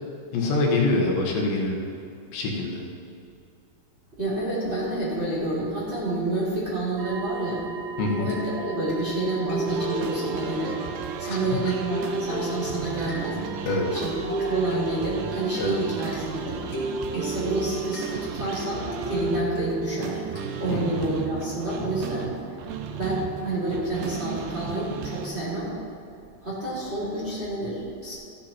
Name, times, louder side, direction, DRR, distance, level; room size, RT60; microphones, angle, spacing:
voice 1, 0.3-1.8 2.3-2.8 8.0-8.3 11.3-11.4 13.7-13.9 15.6-15.8 20.7-21.0, left 2 dB, 75° left, -1 dB, 3.5 m, -25 dB
voice 2, 4.2-7.6 8.1-10.7 11.2-13.6 13.9-16.6 17.1-20.2 20.6-22.3 22.9-25.7 26.4-28.1, right 2 dB, 15° right, -7 dB, 3.1 m, -29 dB
sound 1, 7.0-23.9, right 5 dB, 65° right, 2.4 m, -40 dB
sound 2, 8.3-21.1, right 1 dB, 55° left, 4.3 m, -35 dB
sound 3, 9.7-25.3, right 7 dB, 85° right, 3.1 m, -35 dB
14.5 x 10.5 x 4.4 m, 2.6 s
omnidirectional pair, 5.2 m